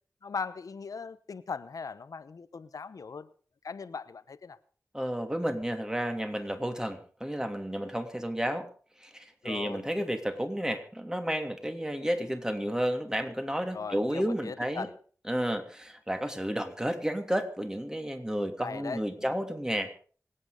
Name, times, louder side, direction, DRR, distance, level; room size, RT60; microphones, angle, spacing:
voice 1, 0.2-3.3 3.6-4.6 9.4-9.9 13.7-14.9 18.6-19.4, left 5 dB, 85° left, 15 dB, 0.9 m, -39 dB
voice 2, 4.9-8.7 9.0-14.9 15.3-19.9, equal, 10° right, 6 dB, 3.0 m, -32 dB
25.5 x 9.0 x 5.1 m, 0.44 s
cardioid pair, 50°, 6 cm